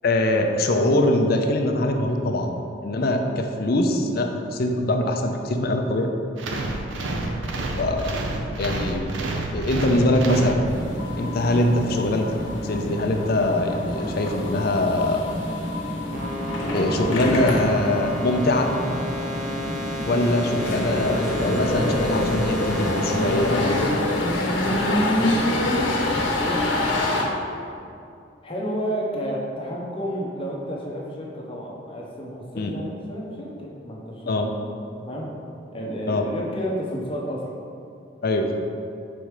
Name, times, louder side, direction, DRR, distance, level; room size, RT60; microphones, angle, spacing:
voice 1, 0.0-2.6 2.8-6.1 7.8-8.1 8.6-9.1 9.5-10.7 11.2-12.3 12.6-15.3 16.7-18.7 20.1-24.0 32.6-32.7 34.3-34.5 36.1-36.2 38.2-38.5, left 1 dB, 50° left, 4 dB, 0.5 m, -23 dB
sound 1, 6.4-11.1, right 2 dB, 80° right, 0.6 m, -29 dB
sound 2, 10.6-27.2, left 1 dB, 80° left, 0.9 m, -26 dB
sound 3, 16.1-23.9, equal, 40° right, 1.1 m, -32 dB
voice 2, 21.3-22.0 24.3-25.6 25.9-26.8 28.4-34.5 35.0-35.3 35.7-37.5, equal, 30° left, -3 dB, 0.8 m, -32 dB
5.1 x 4.3 x 4.7 m, 2.5 s
head